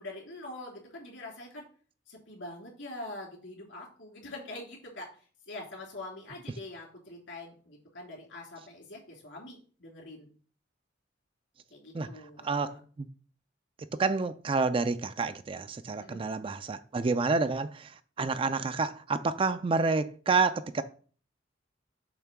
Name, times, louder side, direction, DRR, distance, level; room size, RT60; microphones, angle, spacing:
voice 1, 0.0-1.6 2.1-10.3 11.7-12.8 16.0-16.2, left 2 dB, 75° left, 3.1 m, -44 dB
voice 2, 12.4-13.1 14.0-17.8 18.2-20.8, right 4 dB, 30° right, 0.3 m, -29 dB
7.1 x 3.2 x 5.9 m
head